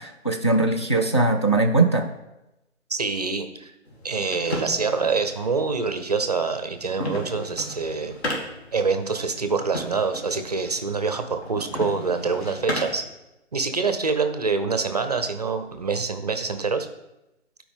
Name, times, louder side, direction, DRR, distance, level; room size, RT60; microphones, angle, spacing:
voice 1, 0.0-2.1, right 2 dB, 25° left, 0 dB, 0.5 m, -20 dB
voice 2, 2.9-3.7 4.0-8.1 8.7-13.0 13.5-16.9, right 4 dB, 35° right, 8 dB, 0.5 m, -25 dB
sound 1, 3.9-13.1, left 1 dB, 55° left, 2.5 m, -35 dB
12.5 x 4.8 x 3.6 m, 0.94 s
figure-of-eight pair, 145°, 38 cm